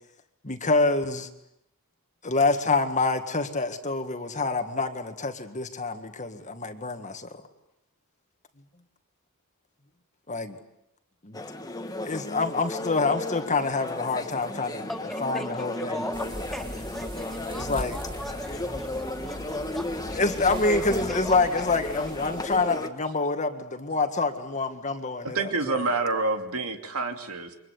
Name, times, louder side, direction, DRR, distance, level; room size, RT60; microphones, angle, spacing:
voice 1, 0.4-1.3 2.2-7.4 10.3-10.6 11.2-11.4 12.0-14.9 15.2-16.0 17.5-18.0 20.2-25.8, left 3 dB, 35° left, 7 dB, 1.9 m, -27 dB
sound 1, 11.3-22.9, left 2 dB, 15° left, 1.6 m, -34 dB
voice 2, 14.9-20.4 20.9-21.4, equal, ahead, 4 dB, 3.8 m, -39 dB
sound 2, 16.1-22.6, equal, 25° right, 4.6 m, -40 dB
voice 3, 25.3-27.5, right 3 dB, 80° right, 5 dB, 2.9 m, -27 dB
28.5 x 24.0 x 8.4 m, 0.82 s
head